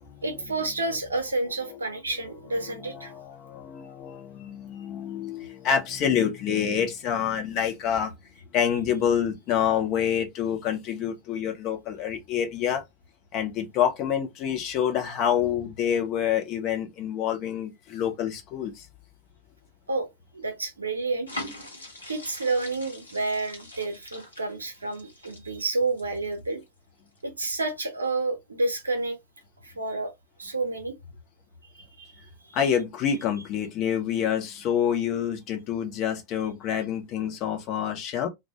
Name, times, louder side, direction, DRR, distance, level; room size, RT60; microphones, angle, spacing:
voice 1, 0.2-3.1 19.9-20.1 20.3-21.4 22.1-26.6 27.2-29.2 29.6-30.1 30.4-30.9 31.7-32.1, right 3 dB, 75° right, 0.7 m, -29 dB
voice 2, 2.6-8.1 8.5-12.8 13.3-18.9 32.5-38.3, left 8 dB, 40° left, 0.7 m, -27 dB
sound 1, 21.3-26.6 27.1-27.2, left 1 dB, 80° left, 0.8 m, -42 dB
2.2 x 2.0 x 2.8 m
figure-of-eight pair, 90°, 0 cm